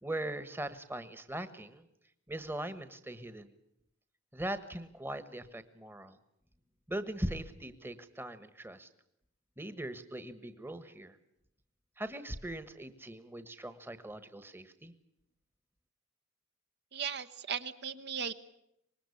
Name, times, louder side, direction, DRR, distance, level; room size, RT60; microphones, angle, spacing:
voice 1, 0.0-1.8 2.3-3.5 4.3-6.2 6.9-8.9 9.6-11.2 12.0-14.9, right 1 dB, 10° right, 12 dB, 1.3 m, -40 dB
voice 2, 16.9-18.3, right 7 dB, 55° right, 9 dB, 1.1 m, -37 dB
25.5 x 20.5 x 8.4 m, 0.78 s
head